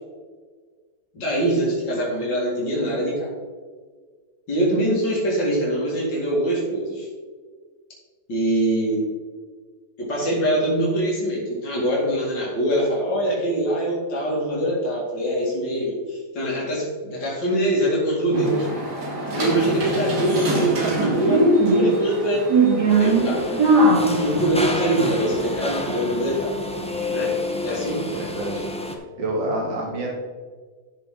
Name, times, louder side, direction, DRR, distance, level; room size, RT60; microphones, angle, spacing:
voice 1, 1.1-3.3 4.5-7.1 8.3-9.0 10.0-18.7 19.3-21.4 21.7-22.5 23.0-23.5 24.2-26.5 27.1-27.3 27.6-28.0, right 1 dB, 80° left, -5 dB, 3.1 m, -23 dB
sound 1, 18.3-24.5, right 2 dB, 65° right, 2.8 m, -21 dB
sound 2, 22.9-28.9, left 2 dB, 5° left, 0.5 m, -29 dB
voice 2, 28.1-28.5 28.9-30.1, right 1 dB, 90° right, -3 dB, 2.7 m, -28 dB
12.5 x 6.3 x 3.9 m, 1.5 s
omnidirectional pair, 2.0 m